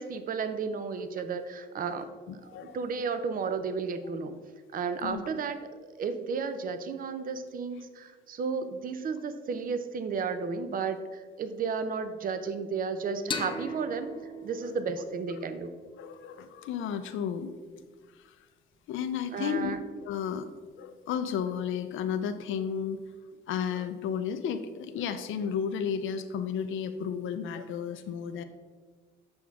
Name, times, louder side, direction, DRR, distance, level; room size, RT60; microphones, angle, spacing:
voice 1, 0.0-2.1 2.6-4.4 4.7-5.6 6.0-14.1 14.4-15.7 19.3-19.8, right 5 dB, 45° right, 10 dB, 0.6 m, -33 dB
voice 2, 2.3-2.8 5.0-5.2 14.6-14.7 16.0-17.5 17.8-17.9 18.1-18.4 18.9-19.8 20.0-20.5 20.8-23.0 23.5-28.4, left 7 dB, 90° left, 8 dB, 0.5 m, -33 dB
sound 1, 13.3-16.7, left 2 dB, 25° left, 0.5 m, -39 dB
7.7 x 6.1 x 3.5 m, 1.5 s
cardioid pair, 140°, 20 cm